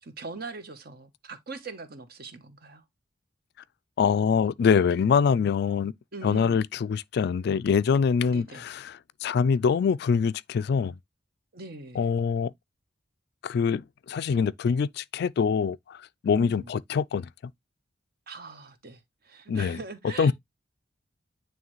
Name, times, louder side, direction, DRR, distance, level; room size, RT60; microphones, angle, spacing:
voice 1, 0.0-2.8 6.1-6.6 8.3-8.6 11.5-12.1 16.2-16.7 18.3-20.3, right 3 dB, 55° right, 1.1 m, -41 dB
voice 2, 4.0-5.9 6.2-8.9 9.2-11.0 12.0-12.5 13.4-17.3 19.5-19.8 20.2-20.3, left 6 dB, 60° left, 0.3 m, -24 dB
9.4 x 3.2 x 3.1 m
head